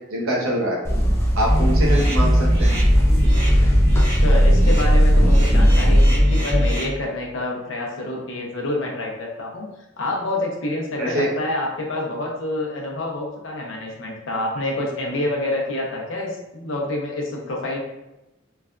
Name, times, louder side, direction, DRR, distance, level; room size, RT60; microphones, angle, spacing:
voice 1, 0.1-0.8 1.3-2.8 11.0-11.3, equal, 80° right, -3 dB, 0.7 m, -24 dB
sound 1, 0.8-6.0, equal, 10° left, 0.3 m, -21 dB
sound 2, 1.5-6.8, equal, 30° right, 1.0 m, -17 dB
voice 2, 4.1-9.7 10.0-17.8, left 2 dB, 65° left, -1 dB, 0.6 m, -27 dB
3.2 x 2.2 x 2.4 m, 0.96 s
head